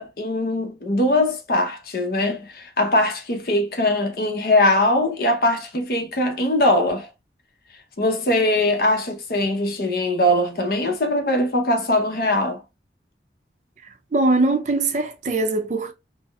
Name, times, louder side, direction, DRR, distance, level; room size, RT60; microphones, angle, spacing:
voice 1, 0.0-7.1 8.0-12.6, left 1 dB, 55° left, 0.7 m, -21 dB
voice 2, 14.1-15.9, right 2 dB, 40° right, 0.5 m, -21 dB
4.1 x 2.0 x 2.3 m
head